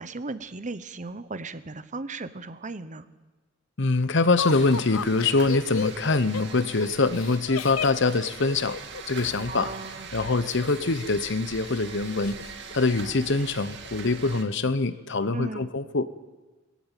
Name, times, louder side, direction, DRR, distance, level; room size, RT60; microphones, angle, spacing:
voice 1, 0.0-3.1 9.5-10.1 15.3-15.7, right 3 dB, 35° right, 13 dB, 0.9 m, -36 dB
voice 2, 3.8-8.8 9.1-9.7 10.1-12.4 12.7-16.0, left 3 dB, 60° left, 13 dB, 1.0 m, -24 dB
Laughter, 4.4-9.4 10.5-11.3 11.6-11.7 12.1-12.5, left 6 dB, 85° left, 0.6 m, -34 dB
sound 1, 4.4-14.4, right 5 dB, 60° right, 2.3 m, -42 dB
21.0 x 15.5 x 9.1 m, 1.2 s
head